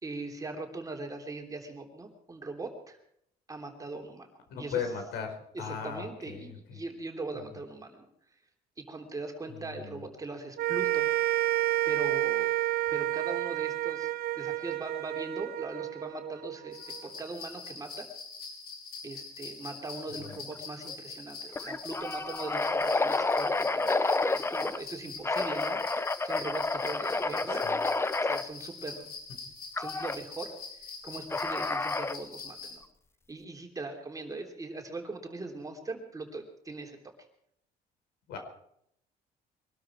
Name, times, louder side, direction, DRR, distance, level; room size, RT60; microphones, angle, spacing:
voice 1, 0.0-3.0 3.5-4.3 4.6-4.9 5.5-8.1 8.8-11.1 11.9-12.6 12.9-18.1 19.0-27.7 28.2-29.1 29.8-32.8 33.3-37.1, right 3 dB, 20° right, 3 dB, 3.5 m, -40 dB
voice 2, 4.5-5.3 5.6-6.5 9.5-10.0 20.4-20.5 27.5-27.7 38.3-38.4, left 7 dB, 80° left, 6 dB, 4.5 m, -37 dB
sound 1, 10.6-17.0, right 15 dB, 65° right, 0.7 m, -30 dB
sound 2, 16.7-32.8, left 4 dB, 60° left, 5.1 m, -44 dB
sound 3, 20.3-20.6 20.9-21.0 21.5-24.8 25.2-28.4 29.8-30.2 31.3-32.2, left 3 dB, 15° left, 0.8 m, -29 dB
23.0 x 12.5 x 4.6 m, 0.70 s
cardioid pair, 110°, 17 cm